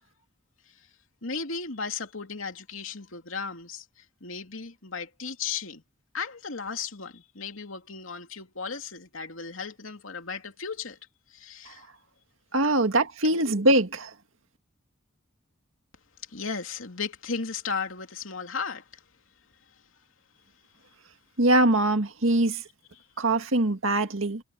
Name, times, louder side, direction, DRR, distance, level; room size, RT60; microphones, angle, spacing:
voice 1, 1.2-5.8 6.1-11.0 11.3-11.9 12.6-12.7 16.2-19.0 23.0-23.1, left 5 dB, 75° left, 2.8 m, -35 dB
voice 2, 12.5-14.1 21.4-22.6 23.2-24.4, right 1 dB, 75° right, 2.0 m, -23 dB
head